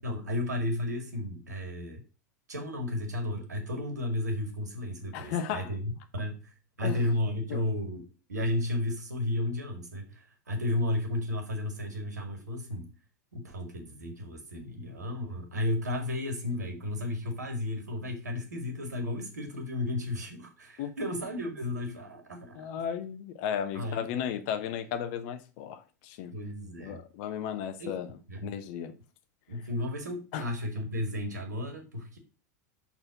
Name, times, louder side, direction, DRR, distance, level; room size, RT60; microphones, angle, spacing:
voice 1, 0.0-2.0 2.5-8.0 8.3-12.9 13.3-22.7 23.7-24.1 26.3-27.0 27.8-28.0 28.3-28.6 29.5-32.2, left 1 dB, 75° right, 2.0 m, -33 dB
voice 2, 5.1-5.7 6.8-7.0 7.5-7.6 20.8-20.9 22.6-26.3 26.8-28.1 28.4-28.9 30.3-30.4, left 8 dB, 50° left, 1.0 m, -34 dB
6.7 x 4.2 x 5.8 m
figure-of-eight pair, 85°, 9 cm